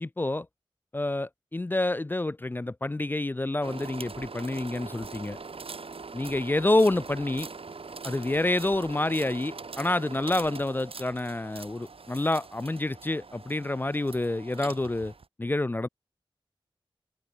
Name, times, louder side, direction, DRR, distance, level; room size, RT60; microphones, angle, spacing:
voice 1, 0.0-0.5 0.9-5.4 6.1-7.5 8.0-15.1 15.4-15.9, left 2 dB, 20° left, 0.3 m, -28 dB
sound 1, 3.6-15.2, right 4 dB, 75° right, 4.0 m, -42 dB
wide cardioid pair, 80°, 10 cm